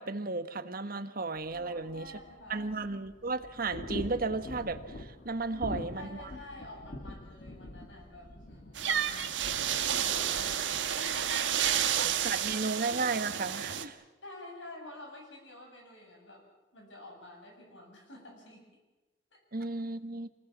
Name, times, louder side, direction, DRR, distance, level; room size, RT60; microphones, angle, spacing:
voice 1, 0.0-2.1 2.5-6.1 12.0-14.0 19.5-20.3, right 3 dB, 50° right, 10 dB, 1.3 m, -34 dB
sound 1, 1.3-12.5, left 1 dB, 50° left, 1.9 m, -45 dB
voice 2, 1.5-2.8 5.5-10.7 11.0-11.2 14.2-16.4 16.7-18.6, left 1 dB, 90° left, 1 dB, 7.8 m, -49 dB
sound 2, 8.7-13.8, right 9 dB, 85° right, 1.5 m, -30 dB
26.5 x 19.5 x 7.4 m, 1.1 s
head